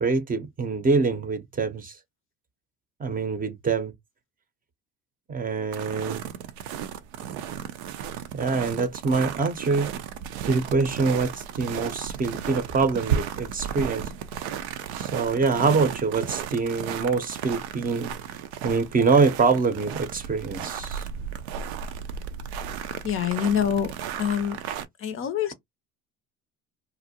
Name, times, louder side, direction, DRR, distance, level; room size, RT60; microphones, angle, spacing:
voice 1, 0.0-1.9 3.0-3.9 5.3-6.2 8.3-9.9 10.4-14.1 14.9-18.1 18.6-21.0, right 4 dB, 25° right, 0.6 m, -25 dB
sound 1, 5.7-24.9, right 8 dB, 80° right, 0.5 m, -34 dB
voice 2, 23.0-23.9 24.2-24.6 25.0-25.5, left 8 dB, 45° left, 0.5 m, -25 dB
2.5 x 2.0 x 2.7 m
hypercardioid pair, 70°, 31 cm